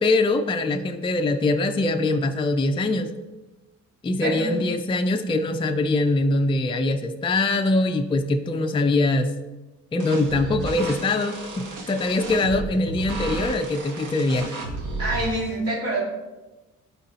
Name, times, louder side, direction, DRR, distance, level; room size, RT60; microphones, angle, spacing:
voice 1, 0.0-3.1 4.0-9.3 9.9-14.5, left 2 dB, 15° left, 5 dB, 0.4 m, -23 dB
voice 2, 4.2-4.6 15.0-16.0, right 2 dB, 55° right, -4 dB, 1.8 m, -26 dB
sound 1, 10.0-15.3, right 2 dB, 85° right, 1.2 m, -33 dB
11.0 x 3.8 x 2.8 m, 1.1 s
cardioid pair, 90°, 30 cm